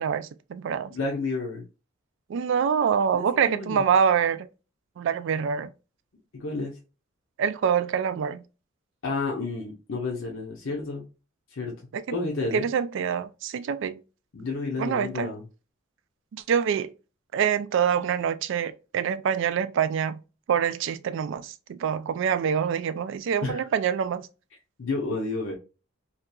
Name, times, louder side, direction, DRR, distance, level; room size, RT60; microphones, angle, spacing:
voice 1, 0.0-0.9 2.3-4.5 5.0-5.7 7.4-8.4 11.9-12.0 12.5-14.0 14.8-15.3 16.3-16.9 17.3-20.2 20.5-24.3, right 7 dB, 65° right, 0.3 m, -25 dB
voice 2, 0.9-1.7 3.1-3.9 6.3-6.7 9.0-11.0 11.5-11.8 12.1-12.7 14.3-15.4 23.4-23.6 24.8-25.6, left 3 dB, 70° left, 0.7 m, -31 dB
2.8 x 2.4 x 2.3 m
head